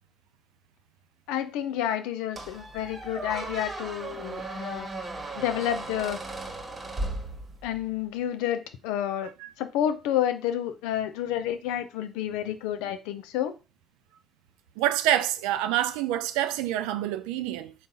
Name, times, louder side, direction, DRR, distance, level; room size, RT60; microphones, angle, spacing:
voice 1, 1.3-4.9 5.3-6.2 7.6-9.3 9.6-13.5, left 10 dB, 85° left, 0.4 m, -30 dB
Squeak, 2.4-7.9, right 2 dB, 30° right, 1.2 m, -36 dB
voice 2, 14.8-17.7, right 13 dB, 85° right, 0.3 m, -27 dB
3.9 x 2.3 x 4.0 m
supercardioid pair, 60°, 0 cm